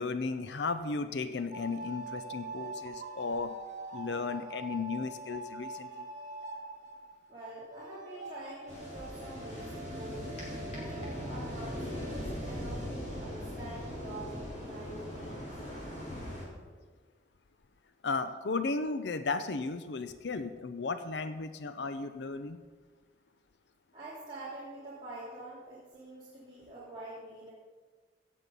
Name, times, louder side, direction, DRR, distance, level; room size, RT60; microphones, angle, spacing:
voice 1, 0.0-3.5 3.9-6.1 18.0-22.6, left 4 dB, 70° left, 10 dB, 0.6 m, -35 dB
sound 1, 1.5-7.4 7.6-13.6, right 2 dB, 40° right, 1.4 m, -45 dB
voice 2, 7.3-10.3 10.7-15.7 23.9-27.5, right 1 dB, 25° right, -10 dB, 3.1 m, -46 dB
sound 2, 8.7-16.4, equal, 35° left, 4.0 m, -40 dB
16.5 x 7.5 x 5.4 m, 1.5 s
head